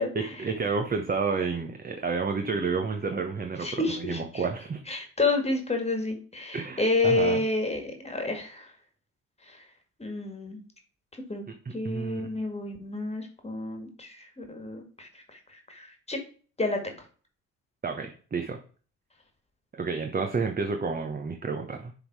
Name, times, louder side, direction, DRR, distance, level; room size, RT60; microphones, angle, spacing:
voice 1, 0.1-4.8 6.5-7.4 11.5-12.3 17.8-18.6 19.8-21.9, right 4 dB, 30° right, 4 dB, 1.0 m, -30 dB
voice 2, 3.6-4.5 4.9-8.7 9.5-9.6 10.0-10.6 11.3-11.4 11.7-15.4 15.7-16.2 16.6-16.8, left 2 dB, 20° left, 5 dB, 1.8 m, -29 dB
7.0 x 3.7 x 4.7 m, 0.40 s
cardioid pair, 90°, 30 cm